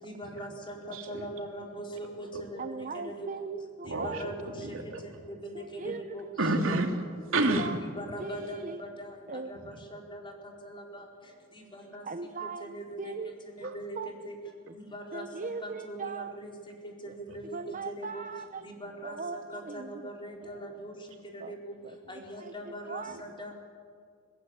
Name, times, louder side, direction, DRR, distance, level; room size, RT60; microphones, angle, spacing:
voice 1, 0.0-3.4 3.8-4.7 5.3-6.3 8.0-10.3 10.6-11.1 11.5-12.0 12.4-13.1 13.6-14.0 14.2-14.3 14.7-16.5 17.0-17.6 17.9-18.2 18.6-20.9 21.3-21.7 22.1-23.5, equal, 25° left, 1 dB, 4.3 m, -41 dB
voice 2, 0.9-1.3 2.3-2.4 3.8-5.2 6.4-7.7 9.6-9.8 13.6-13.7 17.3-17.4 20.4-20.5 23.1-23.2, right 2 dB, 70° right, 3 dB, 3.1 m, -31 dB
voice 3, 2.6-3.7 4.0-4.2 5.8-6.0 7.6-7.7 8.2-8.8 9.3-9.5 12.1-12.6 13.0-13.3 13.6-14.1 15.1-16.4 17.5-18.6 19.0-19.9 21.4-21.5 22.4-22.5 22.9-23.2, right 4 dB, 40° right, 8 dB, 0.7 m, -38 dB
30.0 x 17.0 x 8.8 m, 2.2 s
head